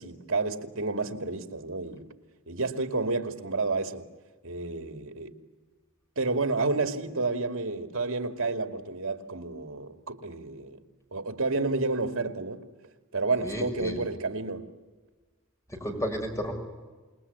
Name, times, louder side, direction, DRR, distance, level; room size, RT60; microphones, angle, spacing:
voice 1, 0.0-2.1 2.5-4.1 4.4-5.4 6.2-10.8 11.1-12.6 13.1-14.7, right 3 dB, 70° right, 2.6 m, -30 dB
voice 2, 13.4-14.0 15.7-16.5, equal, 15° left, 6.1 m, -32 dB
28.5 x 21.0 x 9.7 m
head